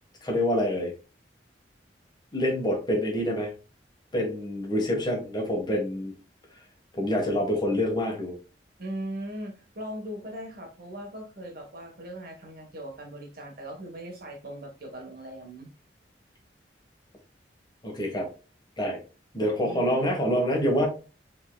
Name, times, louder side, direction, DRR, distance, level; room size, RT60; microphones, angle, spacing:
voice 1, 0.2-0.9 2.3-3.5 4.1-6.1 6.5-6.6 6.9-8.3 17.8-18.3 18.8-19.0 19.3-20.9, equal, 25° left, 0 dB, 1.5 m, -26 dB
voice 2, 8.8-15.7 19.6-20.1, right 1 dB, 60° right, 2 dB, 1.4 m, -39 dB
5.5 x 3.7 x 2.3 m, 0.33 s
head